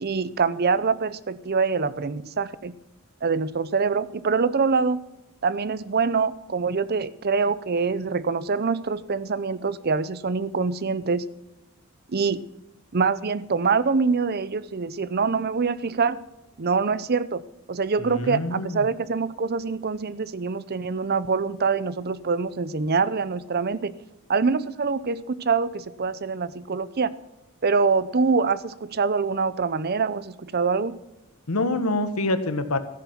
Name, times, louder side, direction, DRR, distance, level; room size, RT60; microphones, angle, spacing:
voice 1, 0.0-2.7 3.2-5.0 5.4-11.2 12.1-12.4 12.9-16.2 16.6-17.4 17.7-23.9 24.3-27.1 27.6-30.9, right 4 dB, 45° right, 17 dB, 0.6 m, -25 dB
voice 2, 18.0-18.9 31.5-32.8, left 2 dB, 85° left, 10 dB, 1.4 m, -26 dB
14.0 x 10.0 x 5.9 m, 0.97 s
head